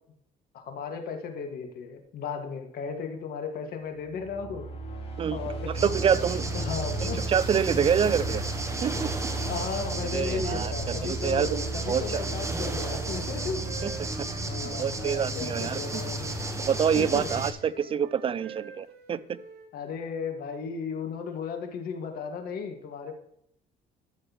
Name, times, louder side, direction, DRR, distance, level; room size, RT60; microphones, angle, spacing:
voice 1, 0.5-4.7 5.3-5.7 6.5-7.2 9.5-13.7 14.5-16.3 16.9-17.3 19.7-23.1, left 5 dB, 65° left, 5 dB, 1.8 m, -35 dB
sound 1, 4.1-15.1, right 3 dB, 35° left, 3.9 m, -36 dB
sound 2, 5.7-17.5, right 1 dB, 15° right, 1.1 m, -33 dB
voice 2, 5.8-6.5 7.0-8.4 8.8-9.1 10.1-11.6 11.9-12.3 13.8-13.9 14.6-16.0 16.7-19.4, right 8 dB, 35° right, 16 dB, 0.5 m, -27 dB
Wind instrument woodwind instrument, 12.8-16.0 16.3-19.7, right 5 dB, 65° right, 3.5 m, -48 dB
13.0 x 6.4 x 3.0 m, 0.73 s
cardioid pair, 110°, 17 cm